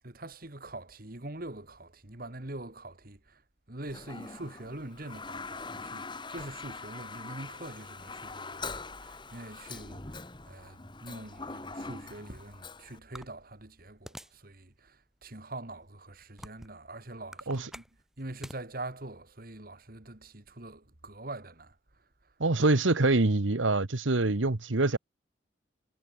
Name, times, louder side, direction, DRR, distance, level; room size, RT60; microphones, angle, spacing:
voice 1, 0.0-3.4 3.7-17.8 18.2-22.3, right 2 dB, 50° right, 2.3 m, -44 dB
Toilet flush, 3.9-13.0, left 4 dB, 25° left, 2.4 m, -43 dB
sound 1, 13.1-14.5 15.0-15.1 15.8-16.8 17.2-18.6, equal, ahead, 6.3 m, -46 dB
voice 2, 22.4-25.0, right 2 dB, 85° right, 1.3 m, -25 dB
head